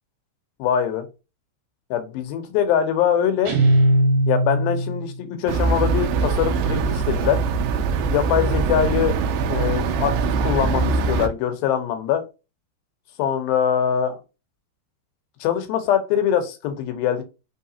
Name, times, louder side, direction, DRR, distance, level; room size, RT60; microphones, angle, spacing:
voice 1, 0.6-1.1 1.9-3.6 4.3-7.4 8.1-12.2 13.2-14.2 15.4-17.2, left 9 dB, 75° left, 2.5 m, -23 dB
Guitar, 3.5-5.2, right 1 dB, 60° right, 2.3 m, -19 dB
sound 1, 5.5-11.3, right 4 dB, 85° right, 2.0 m, -22 dB
5.7 x 3.3 x 2.7 m
omnidirectional pair, 4.6 m